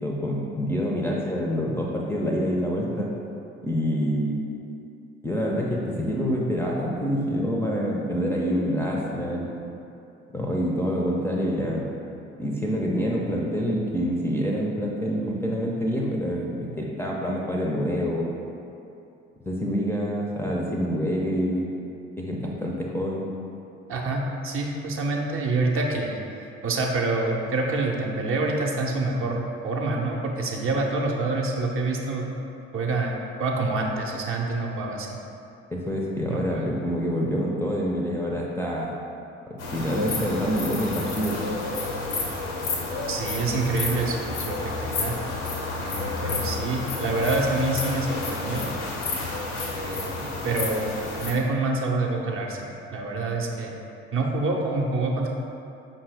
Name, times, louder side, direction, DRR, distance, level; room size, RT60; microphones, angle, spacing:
voice 1, 0.0-3.1 3.6-4.4 5.2-9.5 10.3-11.9 12.4-18.3 19.4-21.7 22.2-23.3 35.7-38.9 39.5-41.4, equal, 5° left, -4 dB, 0.4 m, -26 dB
voice 2, 23.9-26.2 26.6-32.3 32.7-35.2 36.3-36.7 43.1-45.2 45.8-48.7 49.7-50.9 51.2-53.7 54.1-55.3, right 2 dB, 40° right, 0 dB, 0.6 m, -27 dB
sound 1, 39.6-51.3, left 3 dB, 80° left, 0.6 m, -30 dB
5.2 x 2.6 x 3.3 m, 2.7 s
figure-of-eight pair, 45°, 34 cm